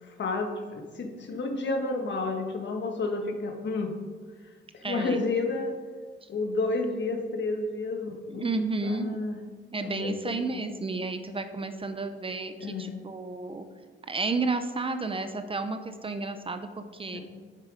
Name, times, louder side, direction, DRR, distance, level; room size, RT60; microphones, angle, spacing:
voice 1, 0.0-3.9 4.7-5.7 6.3-9.4 9.8-10.6 12.6-13.0 17.1-17.2, left 3 dB, 60° left, 4 dB, 1.5 m, -31 dB
voice 2, 4.8-5.2 8.3-9.2 9.7-13.6 14.1-17.2, right 3 dB, 25° right, 8 dB, 0.6 m, -32 dB
9.9 x 7.5 x 5.1 m, 1.5 s
wide cardioid pair, 150°, 21 cm